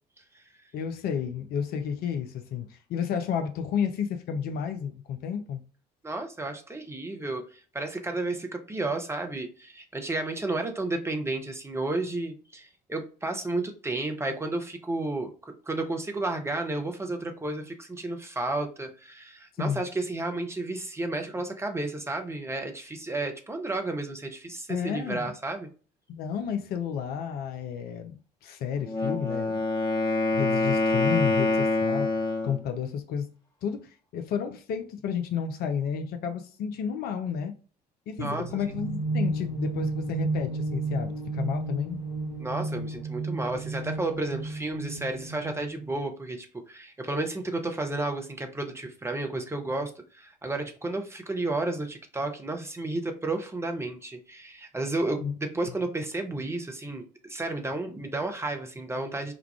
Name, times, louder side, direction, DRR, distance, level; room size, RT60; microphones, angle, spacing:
voice 1, 0.7-5.6 19.6-19.8 24.7-25.3 26.1-29.6 30.3-32.2 32.4-33.3 33.6-37.5 38.1-42.0 55.2-55.3, left 7 dB, 45° left, 0.5 m, -31 dB
voice 2, 6.0-25.7 38.2-38.7 42.4-59.3, right 2 dB, 10° right, 0.6 m, -32 dB
Wind instrument woodwind instrument, 28.8-32.6, left 2 dB, 20° left, 1.1 m, -26 dB
sound 1, 38.2-45.9, right 2 dB, 85° right, 0.7 m, -32 dB
4.8 x 2.3 x 2.2 m
figure-of-eight pair, 55°, 21 cm